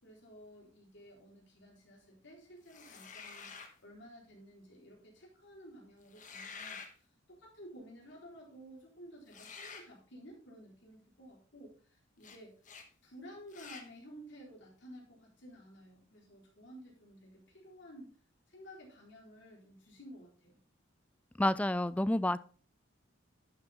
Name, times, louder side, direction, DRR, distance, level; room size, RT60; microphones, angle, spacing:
voice 1, 0.0-3.5 3.8-6.8 7.3-12.5 13.0-18.1 18.5-20.6, equal, 65° left, 4.0 m, -53 dB
sound 1, 2.7-3.8 6.0-6.9 9.3-9.9 12.2-12.4 12.6-12.9 13.5-13.9, left 5 dB, 40° left, 1.4 m, -48 dB
voice 2, 21.4-22.4, left 1 dB, 5° left, 0.3 m, -29 dB
11.5 x 6.9 x 3.5 m
head